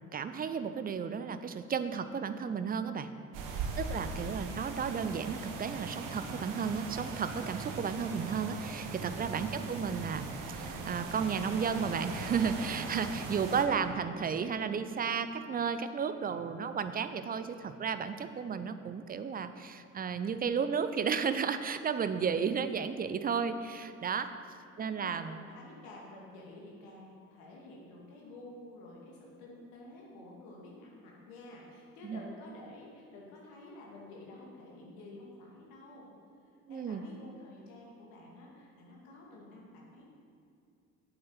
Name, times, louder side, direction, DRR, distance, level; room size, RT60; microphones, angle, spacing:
voice 1, 0.1-3.1 3.8-24.3 24.8-25.4 32.0-32.2 36.7-37.1, right 6 dB, 25° right, 11 dB, 0.6 m, -33 dB
sound 1, 3.3-13.6, right 3 dB, 55° right, 1.2 m, -40 dB
voice 2, 3.8-4.3 9.5-9.8 13.4-13.7 24.8-36.1 36.7-40.0, left 2 dB, 65° left, -3 dB, 2.3 m, -50 dB
8.5 x 7.9 x 5.6 m, 2.5 s
figure-of-eight pair, 50°, 39 cm